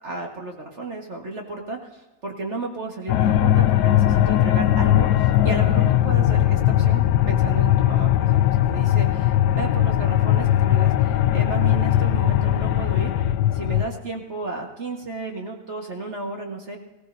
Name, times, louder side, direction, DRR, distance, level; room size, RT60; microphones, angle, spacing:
voice 1, 0.0-13.1 13.5-16.8, right 3 dB, 40° right, 1 dB, 1.7 m, -33 dB
sound 1, 3.1-13.9, left 12 dB, 70° left, 1.1 m, -19 dB
19.5 x 17.0 x 2.7 m, 1.1 s
omnidirectional pair, 2.0 m